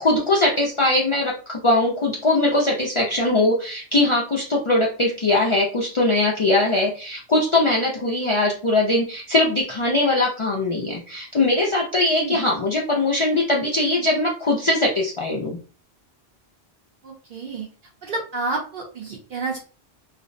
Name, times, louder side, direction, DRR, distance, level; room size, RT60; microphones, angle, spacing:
voice 1, 0.0-15.6, left 2 dB, 55° left, -4 dB, 0.3 m, -21 dB
voice 2, 17.0-17.7 18.0-19.6, right 3 dB, 60° right, -2 dB, 0.7 m, -29 dB
2.5 x 2.0 x 2.5 m, 0.38 s
omnidirectional pair, 1.1 m